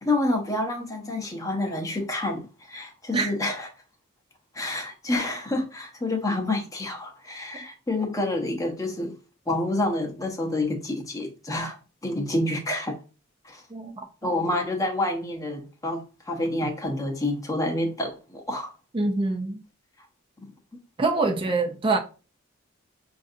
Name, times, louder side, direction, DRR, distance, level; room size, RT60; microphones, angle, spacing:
voice 1, 0.0-3.7 4.5-9.1 9.5-13.0 13.4-13.6 14.2-18.7, left 2 dB, 15° left, 0.7 m, -28 dB
voice 2, 13.7-14.3 18.9-19.6 21.0-22.0, right 3 dB, 25° right, 0.4 m, -25 dB
5.1 x 2.5 x 2.6 m
head